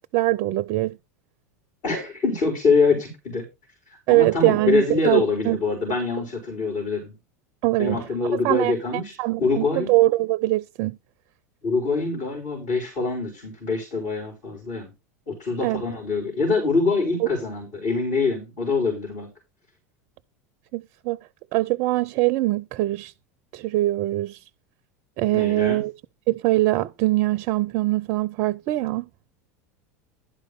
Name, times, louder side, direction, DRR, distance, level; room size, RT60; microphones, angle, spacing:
voice 1, 0.1-1.0 4.1-5.6 7.6-8.0 8.4-8.7 9.2-11.0 15.6-15.8 17.2-17.3 20.7-21.2 21.5-23.1 23.5-24.4 25.2-25.9 26.3-29.1, right 18 dB, 50° right, 0.4 m, -22 dB
voice 2, 1.8-3.5 4.1-7.1 7.8-9.1 9.4-9.9 11.6-14.9 15.3-19.3 25.3-25.8, left 4 dB, 50° left, 4.6 m, -24 dB
11.5 x 5.2 x 5.3 m
hypercardioid pair, 85°, 9 cm